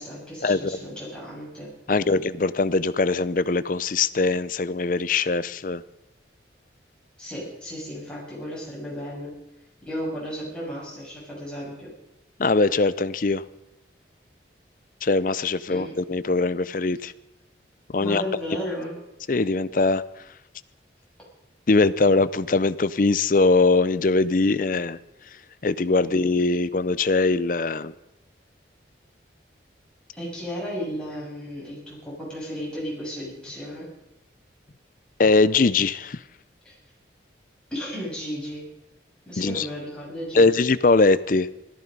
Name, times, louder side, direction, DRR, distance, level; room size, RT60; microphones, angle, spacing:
voice 1, 0.0-2.2 7.2-9.3 9.8-11.9 15.7-16.0 18.0-19.0 26.0-26.3 30.2-33.9 36.6-36.8 37.7-38.7 39.3-40.6, equal, 5° left, -6 dB, 7.4 m, -34 dB
voice 2, 1.9-5.8 12.4-13.4 15.0-17.1 17.9-18.2 19.3-20.0 21.7-25.0 25.6-27.9 35.2-36.2 39.4-39.7 40.3-41.5, left 3 dB, 45° left, 16 dB, 0.5 m, -21 dB
17.0 x 13.5 x 5.3 m, 0.92 s
head